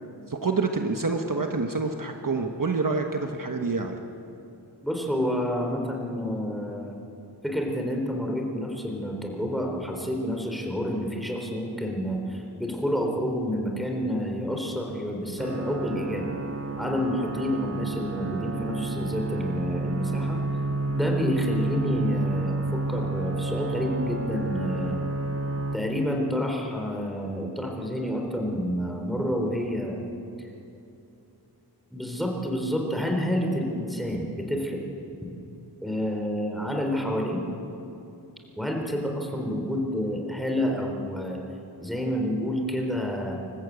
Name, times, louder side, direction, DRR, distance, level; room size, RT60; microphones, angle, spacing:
voice 1, 0.3-4.0, right 4 dB, 50° right, 3 dB, 1.3 m, -27 dB
voice 2, 4.8-7.0 7.4-16.3 16.8-20.4 20.9-25.0 25.7-30.0 30.4-30.5 31.9-34.8 35.8-37.4 38.6-41.4 41.8-43.3, equal, ahead, 1 dB, 3.9 m, -29 dB
sound 1, 15.4-25.8, right 2 dB, 35° right, 1.4 m, -30 dB
26.5 x 14.5 x 8.3 m, 2.8 s
wide cardioid pair, 85°, 41 cm